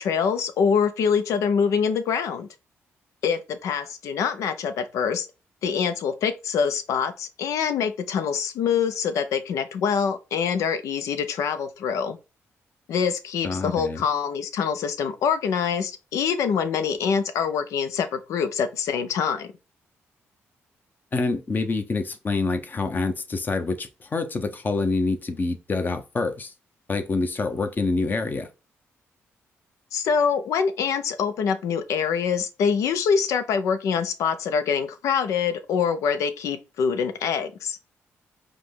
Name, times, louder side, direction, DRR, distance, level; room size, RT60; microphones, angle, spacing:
voice 1, 0.0-2.5 3.2-5.3 5.6-12.2 12.9-19.5 29.9-37.8, left 6 dB, 80° left, 0.7 m, -25 dB
voice 2, 13.4-14.0 21.1-26.5 26.9-28.5, left 3 dB, 35° left, 1.0 m, -26 dB
4.9 x 2.3 x 3.8 m
cardioid pair, 75°, 5 cm